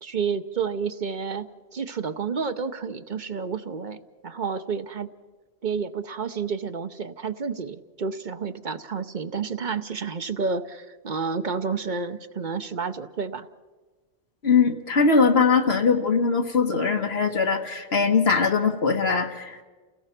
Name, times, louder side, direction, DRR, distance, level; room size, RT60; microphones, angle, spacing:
voice 1, 0.0-5.1 5.6-13.5, right 5 dB, 50° right, 10 dB, 0.9 m, -30 dB
voice 2, 14.4-19.6, left 5 dB, 85° left, 4 dB, 1.8 m, -21 dB
30.0 x 17.5 x 5.9 m, 1.3 s
omnidirectional pair, 1.0 m